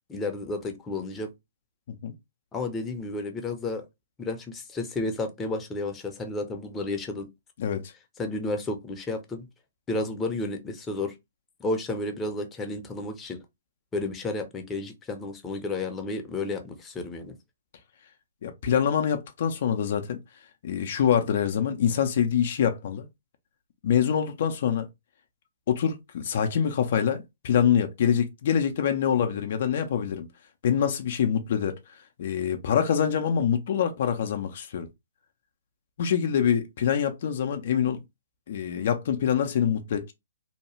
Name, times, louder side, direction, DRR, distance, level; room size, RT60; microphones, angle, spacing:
voice 1, 0.1-1.3 2.5-3.8 4.2-7.3 8.2-9.5 9.9-11.1 11.6-13.4 13.9-17.3, left 2 dB, 15° left, 0.6 m, -32 dB
voice 2, 7.6-7.9 18.4-20.2 20.6-23.1 23.8-24.9 25.7-30.3 30.6-31.8 32.2-34.9 36.0-38.0 38.5-40.1, left 8 dB, 55° left, 0.5 m, -25 dB
2.8 x 2.2 x 3.1 m
hypercardioid pair, 125°, 0 cm